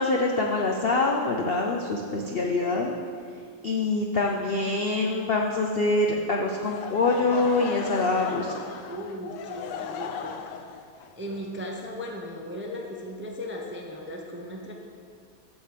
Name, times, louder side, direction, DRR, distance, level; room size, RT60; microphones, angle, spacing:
voice 1, 0.0-3.0 3.6-8.6, left 3 dB, 65° left, 0 dB, 0.6 m, -25 dB
Laughter / Crowd, 6.6-12.5, left 7 dB, 80° left, 1.2 m, -37 dB
voice 2, 8.9-10.4 11.2-14.7, equal, 15° right, 0 dB, 0.4 m, -37 dB
7.4 x 7.3 x 6.7 m, 2.2 s
omnidirectional pair, 1.9 m